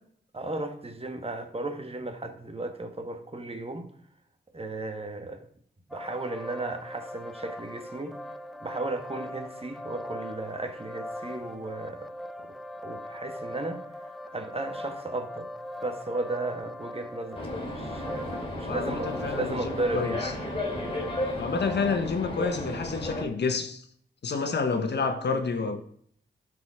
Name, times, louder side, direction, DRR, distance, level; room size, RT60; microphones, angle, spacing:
voice 1, 0.3-3.9 4.5-5.4 5.9-8.2 8.6-12.1 12.4-12.5 12.8-13.8 14.3-15.5 15.8-20.2, right 2 dB, 30° right, 1.6 m, -35 dB
sound 1, 5.9-22.0, left 1 dB, ahead, 0.7 m, -40 dB
sound 2, 17.3-23.2, left 1 dB, 30° left, 3.1 m, -34 dB
voice 2, 18.6-20.3 21.4-23.8 24.2-25.8, left 4 dB, 65° left, 1.3 m, -29 dB
12.5 x 5.1 x 5.0 m
cardioid pair, 55°, 19 cm